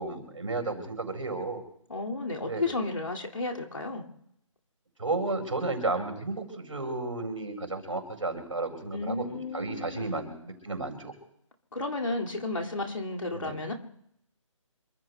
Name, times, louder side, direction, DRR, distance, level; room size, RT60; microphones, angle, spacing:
voice 1, 0.0-1.6 2.5-2.6 5.0-11.1 13.3-13.6, right 3 dB, 70° right, 4 dB, 4.4 m, -33 dB
voice 2, 1.9-4.0 8.9-10.2 11.7-13.7, left 2 dB, 70° left, 1 dB, 2.2 m, -33 dB
27.0 x 24.0 x 2.2 m, 0.74 s
figure-of-eight pair, 150°, 17 cm